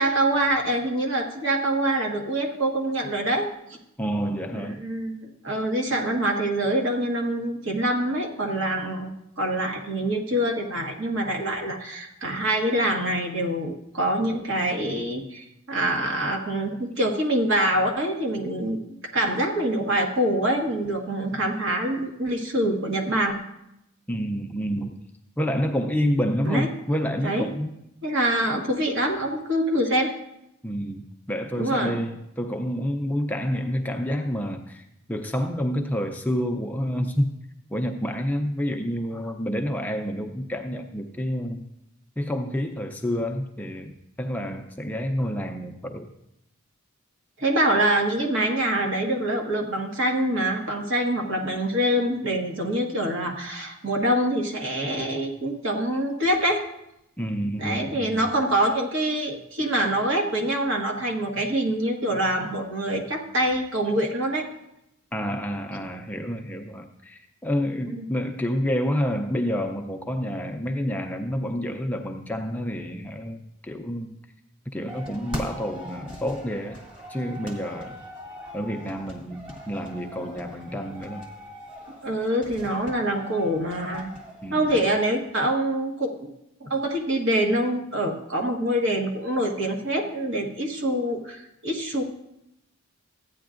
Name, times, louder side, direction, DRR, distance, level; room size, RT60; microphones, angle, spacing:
voice 1, 0.0-3.5 4.6-5.2 5.4-18.8 19.1-23.4 26.4-26.7 27.2-27.4 28.0-30.1 31.6-31.9 47.4-56.6 57.6-64.5 67.9-68.1 82.0-84.1 84.5-86.2 86.6-92.0, right 1 dB, 60° right, 1 dB, 1.4 m, -25 dB
voice 2, 4.0-4.8 24.1-25.0 25.4-27.7 30.6-37.4 37.7-41.6 42.2-46.1 57.2-58.3 65.1-74.1 74.7-76.8 77.1-78.0 78.5-81.3 84.4-84.8, equal, 10° left, 4 dB, 0.4 m, -28 dB
sound 1, 74.9-84.9, equal, 25° right, 1.4 m, -41 dB
14.5 x 9.3 x 2.5 m, 0.82 s
head